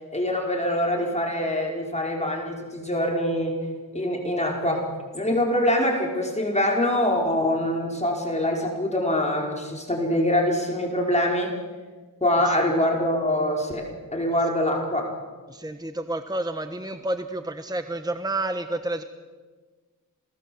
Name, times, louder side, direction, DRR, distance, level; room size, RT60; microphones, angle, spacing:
voice 1, 0.1-3.6 3.9-4.8 5.1-11.5 12.2-13.9 14.1-15.1, left 1 dB, 20° left, 0 dB, 5.0 m, -24 dB
voice 2, 12.4-12.7 15.5-19.0, right 2 dB, 10° right, 8 dB, 1.2 m, -30 dB
28.0 x 19.5 x 7.9 m, 1.4 s
wide cardioid pair, 95°, 36 cm